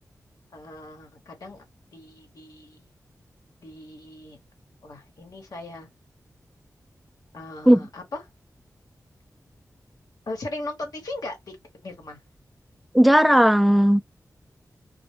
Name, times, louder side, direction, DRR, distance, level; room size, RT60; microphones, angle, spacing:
voice 1, 0.5-1.6 1.9-2.8 3.6-4.4 4.8-5.9 7.3-8.2 10.3-11.6 11.8-12.2, left 2 dB, 70° left, 0.9 m, -38 dB
voice 2, 12.9-14.0, equal, ahead, 0.3 m, -16 dB
2.1 x 2.1 x 3.1 m
cardioid pair, 50°, 7 cm